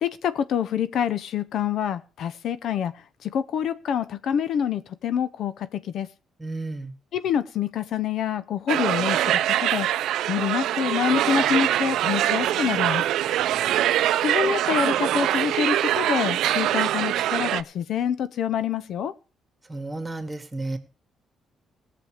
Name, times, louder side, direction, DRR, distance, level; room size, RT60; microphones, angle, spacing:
voice 1, 0.0-6.1 7.1-9.9 10.3-13.1 14.2-19.2, left 8 dB, 70° left, 0.7 m, -26 dB
voice 2, 6.4-6.9 19.7-20.8, right 2 dB, 15° right, 2.1 m, -32 dB
sound 1, 8.7-17.6, right 12 dB, 85° right, 0.5 m, -23 dB
17.5 x 6.9 x 5.0 m
cardioid pair, 90°, 0 cm